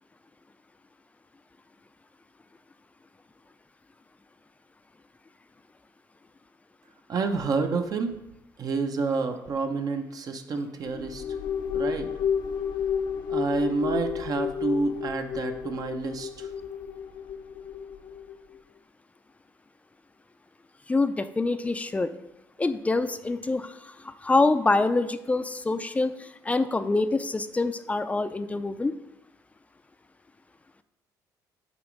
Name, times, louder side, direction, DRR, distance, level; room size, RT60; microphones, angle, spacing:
voice 1, 7.1-8.2 8.6-11.2 11.7-12.1 13.3-16.5, right 4 dB, 50° right, 5 dB, 0.7 m, -29 dB
sound 1, 10.9-18.4, left 7 dB, 65° left, 0.7 m, -31 dB
voice 2, 20.9-22.1 22.6-29.0, left 3 dB, 15° left, 11 dB, 0.4 m, -26 dB
8.0 x 3.0 x 5.1 m, 0.88 s
cardioid pair, 95°, 8 cm